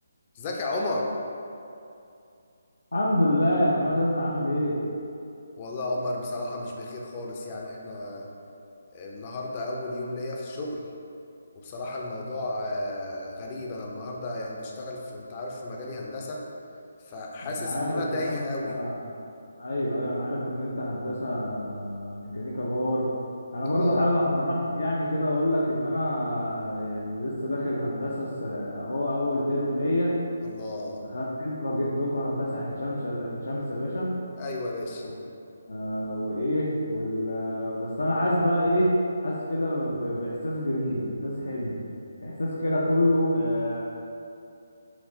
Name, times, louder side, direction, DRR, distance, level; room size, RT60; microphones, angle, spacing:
voice 1, 0.4-1.1 5.6-8.3 8.9-10.8 11.6-16.4 17.1-18.8 23.6-24.1 30.4-31.0 34.4-35.0, left 2 dB, 30° left, -1 dB, 0.5 m, -33 dB
voice 2, 2.9-4.8 17.4-19.2 19.6-23.1 23.5-30.1 31.0-34.1 35.0-35.1 35.7-38.9 39.2-41.8 42.2-43.8, left 1 dB, 80° left, -5 dB, 0.5 m, -27 dB
5.8 x 2.0 x 2.7 m, 2.6 s
figure-of-eight pair, 150°, 0 cm